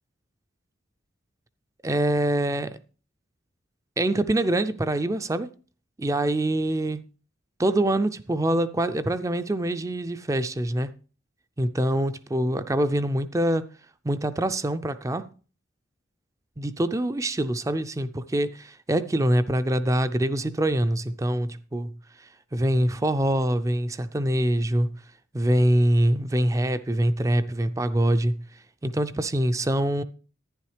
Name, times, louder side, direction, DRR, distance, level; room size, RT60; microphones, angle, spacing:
voice 1, 1.8-2.8 4.0-5.5 6.0-7.0 7.6-10.9 11.6-13.7 14.0-15.3 16.6-21.9 22.5-24.9 25.3-28.4 28.8-30.0, right 1 dB, 15° right, 0.4 m, -24 dB
11.5 x 10.0 x 3.3 m
head